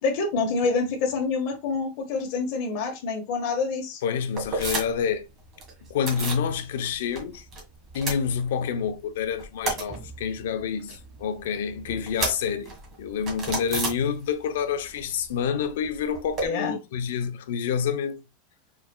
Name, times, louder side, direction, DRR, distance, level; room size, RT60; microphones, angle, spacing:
voice 1, 0.0-4.0 16.4-16.7, left 4 dB, 50° left, 1.7 m, -27 dB
voice 2, 4.0-5.2 5.9-7.5 7.9-12.7 13.0-18.2, left 7 dB, 85° left, 0.8 m, -28 dB
sound 1, 4.4-5.1 5.4-6.5 6.8-7.6 7.9-8.9 9.2-14.6 14.8-16.5, right 3 dB, 25° right, 1.8 m, -33 dB
4.8 x 4.1 x 2.4 m
supercardioid pair, 160°, 0 cm